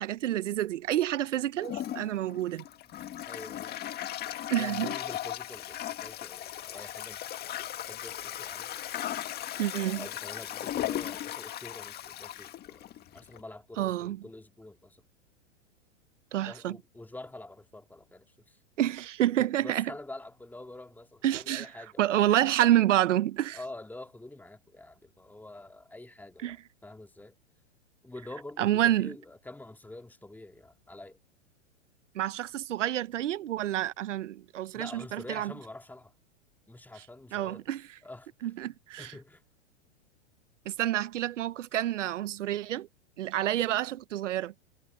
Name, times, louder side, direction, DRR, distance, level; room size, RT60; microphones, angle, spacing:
voice 1, 0.0-2.6 4.5-4.9 9.6-10.0 13.8-14.2 16.3-16.8 18.8-19.8 21.2-21.7 22.0-23.6 26.4-26.6 28.6-29.1 32.1-35.5 37.3-37.8 38.4-39.1 40.7-42.9 43.2-44.5, right 13 dB, 80° right, 1.0 m, -28 dB
Toilet flush, 1.6-13.4, left 12 dB, 25° left, 1.8 m, -37 dB
voice 2, 3.3-3.7 4.6-8.7 9.7-15.0 16.5-18.6 19.4-22.4 23.5-27.4 28.0-31.2 34.7-36.1 36.7-37.6 38.0-38.5 39.0-39.4, left 2 dB, 5° left, 2.3 m, -46 dB
hypercardioid pair, 125°, 36 cm